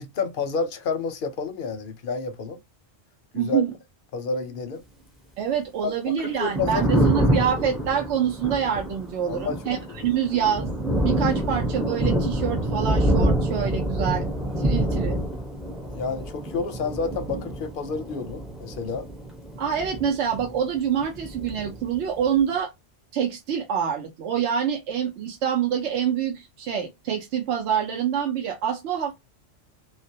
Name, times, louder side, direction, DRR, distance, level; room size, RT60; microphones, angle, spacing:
voice 1, 0.0-2.6 3.3-3.6 4.1-4.8 5.8-7.5 9.3-10.1 15.9-19.1, left 4 dB, 60° left, 0.6 m, -30 dB
voice 2, 3.3-3.7 5.4-10.7 11.0-14.3 14.6-15.2 19.6-22.7 23.1-29.1, right 8 dB, 80° right, 0.9 m, -26 dB
Thunder, 6.3-20.8 21.0-22.3, right 1 dB, ahead, 0.3 m, -26 dB
2.3 x 2.1 x 2.6 m
omnidirectional pair, 1.2 m